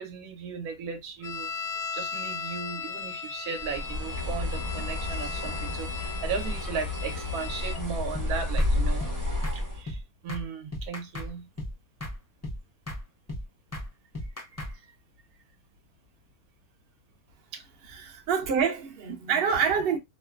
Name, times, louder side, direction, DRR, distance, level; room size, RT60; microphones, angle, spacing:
voice 1, 0.0-1.5 1.9-9.1 9.5-11.5 14.5-14.8 17.5-17.6, right 6 dB, 85° right, 1.2 m, -36 dB
sound 1, 1.2-7.8, left 5 dB, 65° left, 0.7 m, -37 dB
Bird, 3.6-9.8, left 2 dB, 15° right, 0.7 m, -30 dB
sound 2, 8.1-8.3 8.6-8.7 9.0-9.2 9.4-9.6 9.9-10.0 10.3-10.4 10.7-11.3 11.6-11.7 12.0-12.2 12.4-12.6 12.9-13.0 13.3-13.4 13.7-13.9 14.1-14.7, left 1 dB, 20° left, 0.4 m, -35 dB
voice 2, 17.8-20.0, right 6 dB, 50° right, 0.8 m, -26 dB
3.0 x 2.1 x 2.2 m
omnidirectional pair, 1.5 m